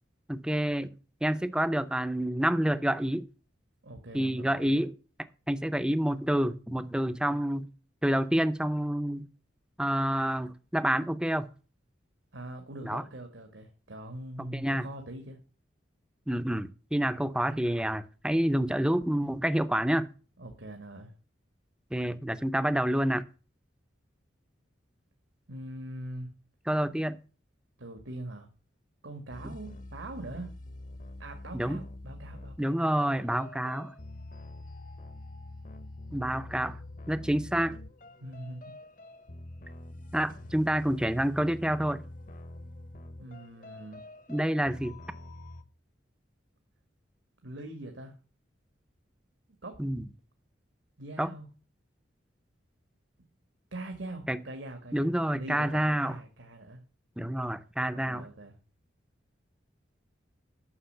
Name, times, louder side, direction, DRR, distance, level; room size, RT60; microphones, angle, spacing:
voice 1, 0.3-0.9 1.2-3.3 4.1-4.9 5.5-7.7 8.0-9.3 9.8-11.5 12.8-13.0 14.4-14.9 16.3-20.1 21.9-23.2 26.7-27.2 29.4-29.5 31.5-31.8 32.6-33.9 36.1-36.8 37.1-37.8 40.1-42.0 44.3-45.0 49.8-50.0 51.2-51.3 54.3-54.4 54.9-56.2 57.2-58.3, right 1 dB, 5° right, 0.5 m, -28 dB
voice 2, 3.8-4.8 12.3-15.4 20.4-21.1 25.5-26.3 27.8-28.5 29.0-30.5 31.2-32.8 38.2-38.7 43.2-44.1 47.4-48.2 49.6-49.8 51.0-51.5 53.7-56.8 57.9-58.5, right 1 dB, 80° right, 1.7 m, -42 dB
sound 1, 29.3-45.6, left 1 dB, 45° left, 0.8 m, -46 dB
9.6 x 6.5 x 6.7 m
head